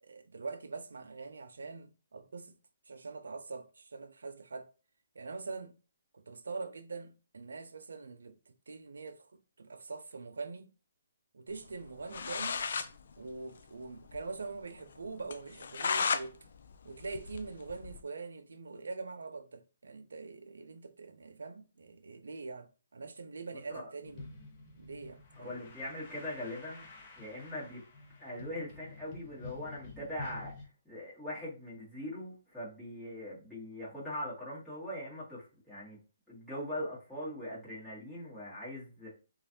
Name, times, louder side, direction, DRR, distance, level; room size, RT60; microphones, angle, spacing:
voice 1, 0.0-2.6 2.9-4.7 5.2-5.7 6.1-8.3 8.7-10.7 11.3-12.6 13.2-16.5 16.8-24.3 24.8-25.6, right 4 dB, 80° right, 0.4 m, -44 dB
sound 1, 11.8-11.9 12.1-12.9 13.2-13.3 13.6-13.7 14.1-14.2 14.6-14.7 15.3-16.3 16.6-18.0, left 5 dB, 65° left, 0.3 m, -34 dB
voice 2, 23.5-23.9 25.4-26.9 27.2-27.8 28.2-30.5 30.8-36.0 36.3-39.1, left 1 dB, 5° left, 1.6 m, -41 dB
sound 2, 24.0-30.6, left 3 dB, 30° left, 0.8 m, -50 dB
3.0 x 2.4 x 2.7 m
hypercardioid pair, 150°, 0 cm